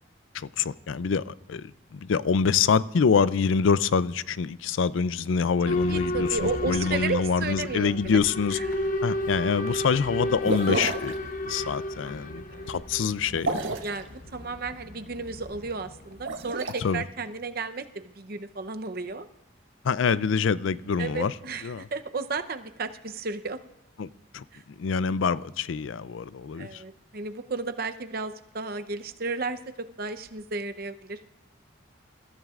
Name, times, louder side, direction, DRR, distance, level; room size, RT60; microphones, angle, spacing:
voice 1, 0.3-8.6 9.0-11.2 11.5-13.5 16.8-17.0 19.8-21.3 21.6-21.9 24.0-24.1 24.3-24.4 24.8-26.8, left 5 dB, 80° left, 0.4 m, -25 dB
Boat Water vehicle / Alarm, 5.6-16.3, left 1 dB, 45° left, 0.9 m, -33 dB
voice 2, 5.7-8.2 8.5-8.6 12.0-12.8 13.8-19.3 21.0-23.6 24.5-24.6 26.6-31.2, right 3 dB, 50° right, 0.7 m, -33 dB
sound 1, 10.4-11.1 13.3-14.0 16.1-16.7, right 2 dB, 85° right, 1.5 m, -29 dB
28.0 x 14.0 x 2.5 m
head